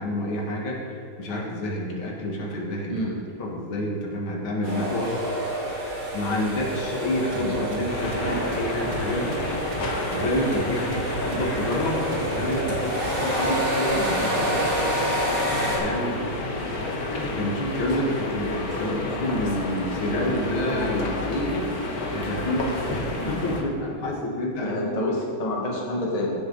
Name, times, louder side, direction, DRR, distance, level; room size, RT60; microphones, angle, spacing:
voice 1, 0.0-3.1 3.4-5.1 6.1-9.4 10.1-14.6 15.5-16.2 17.1-21.7 22.1-25.0, left 1 dB, 70° left, -2 dB, 2.3 m, -28 dB
sound 1, 4.6-15.8, right 1 dB, 35° right, 3.3 m, -29 dB
sound 2, 7.3-14.0, right 8 dB, 75° right, 1.3 m, -41 dB
sound 3, 7.9-23.6, left 2 dB, 50° left, 1.5 m, -30 dB
voice 2, 18.8-19.5 20.1-20.3 23.2-23.4 24.6-26.3, left 1 dB, 20° left, -3 dB, 1.3 m, -29 dB
16.0 x 6.9 x 3.9 m, 2.4 s
omnidirectional pair, 2.3 m